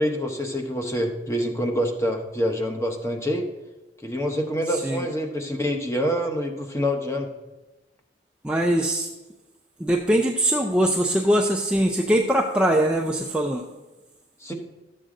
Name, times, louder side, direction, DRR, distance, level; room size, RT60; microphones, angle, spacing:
voice 1, 0.0-3.5 4.0-7.3 14.4-14.5, equal, 15° left, 3 dB, 1.0 m, -26 dB
voice 2, 8.4-9.1 9.8-13.6, right 1 dB, 5° right, 0 dB, 0.5 m, -22 dB
12.5 x 7.8 x 3.8 m, 1.1 s
head